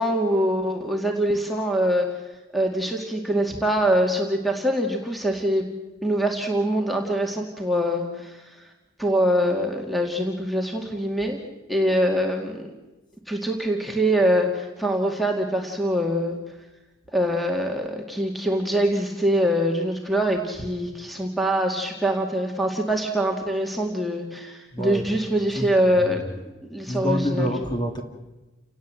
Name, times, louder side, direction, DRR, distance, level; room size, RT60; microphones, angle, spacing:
voice 1, 0.0-2.1 2.5-5.7 6.0-8.5 9.0-12.7 13.3-16.4 17.1-26.2 26.7-27.5, equal, ahead, 1 dB, 2.0 m, -24 dB
voice 2, 24.7-25.1 25.6-26.3 26.9-28.0, equal, 20° left, 4 dB, 2.4 m, -27 dB
29.5 x 18.5 x 7.7 m, 1.1 s
head